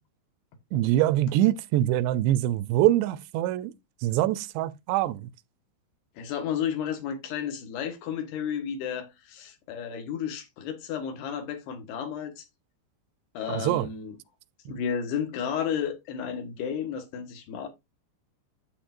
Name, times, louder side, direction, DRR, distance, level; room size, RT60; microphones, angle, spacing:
voice 1, 0.7-3.7 4.0-5.3 13.5-13.9 14.7-14.8, right 14 dB, 85° right, 2.7 m, -24 dB
voice 2, 6.2-12.4 13.4-14.2 14.7-17.7, left 8 dB, 75° left, 3.5 m, -32 dB
10.0 x 8.5 x 2.5 m
omnidirectional pair, 4.9 m